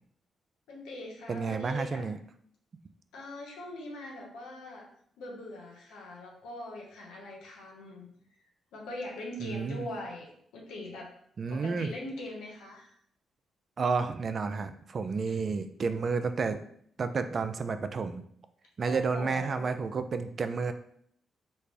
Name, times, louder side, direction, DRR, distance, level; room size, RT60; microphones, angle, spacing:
voice 1, 0.7-2.1 3.1-4.9 5.2-8.1 8.7-11.1 11.5-12.9 15.3-15.4 18.9-19.7, left 1 dB, 90° left, -1 dB, 0.9 m, -42 dB
voice 2, 1.3-2.2 9.4-9.9 11.4-11.9 13.8-16.6 17.0-18.2 18.8-20.7, right 4 dB, 50° right, 10 dB, 0.3 m, -31 dB
3.2 x 2.4 x 3.3 m, 0.64 s
supercardioid pair, 60°, 0 cm